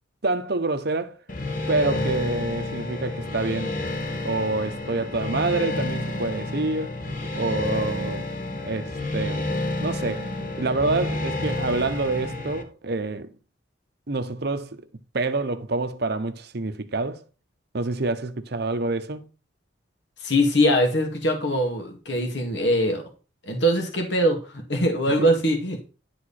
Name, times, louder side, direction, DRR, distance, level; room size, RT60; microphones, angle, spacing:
voice 1, 0.2-1.2 1.7-3.8 4.2-7.0 7.3-8.3 8.6-9.5 9.8-13.3 14.1-14.9 15.1-17.2 17.7-19.3 25.2-25.3, right 3 dB, 55° right, 0.8 m, -27 dB
sound 1, 1.3-12.6, left 2 dB, 45° left, 1.2 m, -30 dB
voice 2, 20.2-23.0 23.4-25.8, equal, 65° left, 2.2 m, -22 dB
11.0 x 4.8 x 4.2 m
head